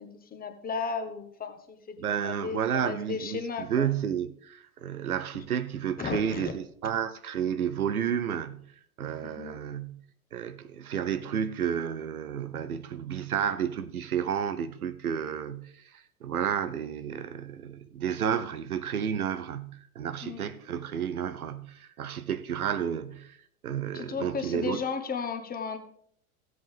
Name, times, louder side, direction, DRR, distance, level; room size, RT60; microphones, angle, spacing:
voice 1, 0.0-2.0 2.2-3.9 6.0-6.5 9.2-9.6 20.2-20.4 23.9-25.8, left 5 dB, 20° left, 1.2 m, -34 dB
voice 2, 2.0-3.4 3.7-8.6 9.0-10.0 10.3-15.7 16.2-23.4 23.6-24.8, right 8 dB, 80° right, 0.7 m, -31 dB
15.0 x 7.8 x 3.5 m
figure-of-eight pair, 85°, 43 cm